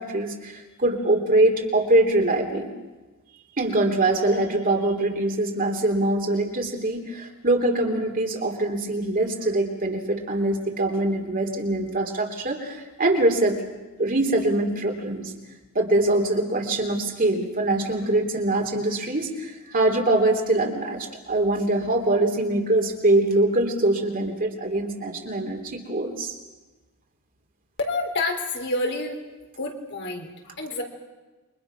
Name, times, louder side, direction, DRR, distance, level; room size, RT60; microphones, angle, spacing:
voice 1, 0.0-2.7 3.6-13.7 14.0-15.3 15.7-26.3, right 2 dB, 40° right, 2 dB, 3.3 m, -23 dB
voice 2, 27.8-29.2 29.6-30.8, left 2 dB, 55° left, 3 dB, 3.8 m, -28 dB
29.0 x 24.0 x 6.1 m, 1.2 s
head